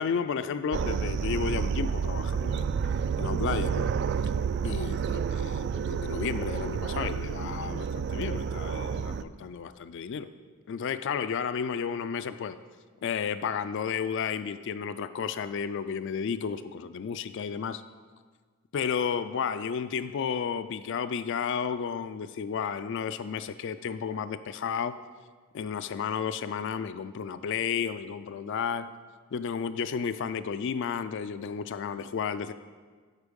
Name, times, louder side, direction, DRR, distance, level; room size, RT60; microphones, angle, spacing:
voice 1, 0.0-2.7 3.2-3.9 4.6-10.3 10.7-12.6 13.0-17.8 18.7-24.9 25.5-28.9 29.3-32.5, left 6 dB, 60° left, 12 dB, 0.4 m, -32 dB
sound 1, 0.7-9.2, right 6 dB, 55° right, 0.3 m, -30 dB
8.1 x 5.4 x 5.2 m, 1.5 s
head